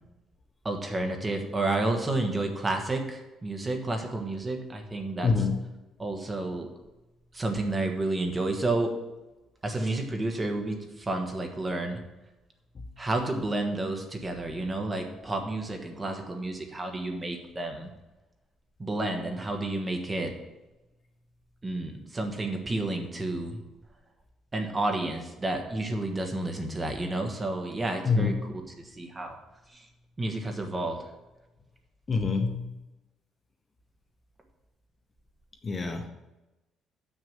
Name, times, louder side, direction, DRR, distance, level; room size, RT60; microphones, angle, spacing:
voice 1, 0.6-5.3 6.0-6.7 7.3-8.9 9.6-12.0 13.0-17.9 18.8-20.3 21.6-23.6 24.5-28.3 28.8-29.4 29.7-29.9 30.2-31.1, right 2 dB, 20° right, 3 dB, 1.3 m, -30 dB
voice 2, 5.2-5.5 12.8-12.9 28.0-28.3 32.1-32.7 35.6-36.1, left 4 dB, 30° left, 4 dB, 0.8 m, -26 dB
7.0 x 6.4 x 7.3 m, 1.0 s
cardioid pair, 140°, 0 cm